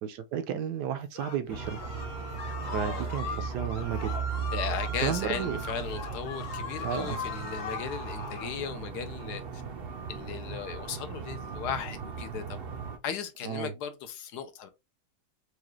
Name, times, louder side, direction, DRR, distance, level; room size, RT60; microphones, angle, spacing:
voice 1, 0.0-1.8 2.7-4.2 5.0-5.6 6.8-7.2 13.4-13.7, right 8 dB, 75° right, 1.2 m, -32 dB
sound 1, 1.2-8.6, left 4 dB, 50° left, 1.4 m, -39 dB
sound 2, 1.5-13.0, right 6 dB, 60° right, 0.6 m, -37 dB
voice 2, 2.6-3.4 4.5-9.6 10.1-12.6 13.0-14.7, left 7 dB, 75° left, 1.2 m, -37 dB
4.8 x 2.3 x 3.0 m
omnidirectional pair, 1.8 m